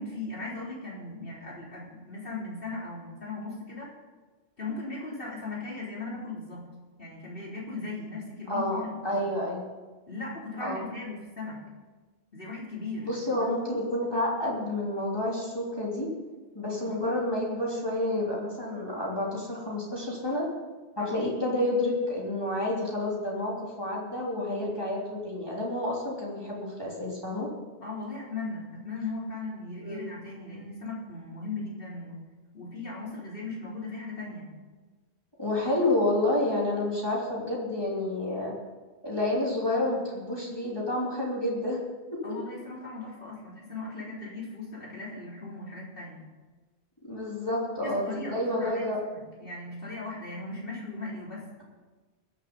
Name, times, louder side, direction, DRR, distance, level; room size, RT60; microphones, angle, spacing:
voice 1, 0.0-3.9 4.6-6.7 7.0-9.3 10.1-11.6 12.3-13.8 16.8-17.0 21.0-21.2 27.8-32.2 32.5-34.5 42.2-46.3 47.8-51.5, left 3 dB, 55° left, -5 dB, 4.1 m, -38 dB
voice 2, 8.5-9.6 10.6-10.9 13.0-16.1 16.5-20.5 21.0-27.5 29.8-30.0 35.4-38.5 39.0-41.8 42.1-42.2 47.0-49.0, left 1 dB, 20° left, -5 dB, 3.2 m, -29 dB
21.5 x 7.4 x 5.4 m, 1.3 s
omnidirectional pair, 1.1 m